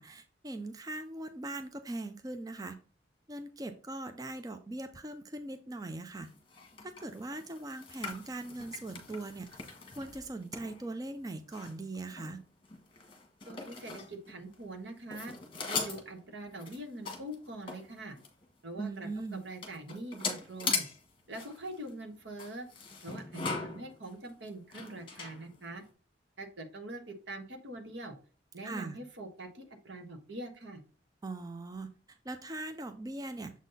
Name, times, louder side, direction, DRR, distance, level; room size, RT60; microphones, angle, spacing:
voice 1, 0.0-2.8 3.3-6.3 6.8-9.5 10.0-12.4 18.8-19.4 28.6-29.0 31.2-33.5, right 2 dB, 20° right, 8 dB, 0.4 m, -40 dB
sound 1, 6.2-14.8 15.1-18.4 18.9-19.0 19.2-25.9, left 5 dB, 30° left, 1.6 m, -40 dB
voice 2, 13.4-15.3 15.7-18.2 18.6-20.9 21.3-22.7 23.0-25.8 26.4-28.1 28.5-30.8, right 1 dB, 75° right, 5 dB, 1.4 m, -43 dB
7.2 x 4.0 x 3.9 m, 0.38 s
head